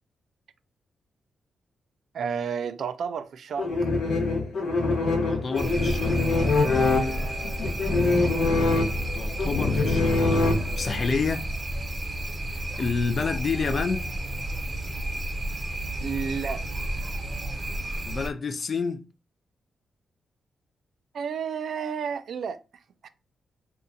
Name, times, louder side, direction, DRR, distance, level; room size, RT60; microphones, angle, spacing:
voice 1, 2.1-3.7 16.0-16.6 21.1-22.6 23.0-23.1, right 6 dB, 65° right, 0.3 m, -31 dB
sound 1, 3.6-11.1, left 3 dB, 70° left, 1.0 m, -24 dB
voice 2, 5.2-6.4 9.1-10.4 10.7-11.5 12.5-14.1 18.1-19.1, left 5 dB, 40° left, 0.3 m, -29 dB
sound 2, 5.5-18.3, right 1 dB, 30° right, 0.6 m, -31 dB
2.6 x 2.3 x 3.7 m
wide cardioid pair, 145°, 0 cm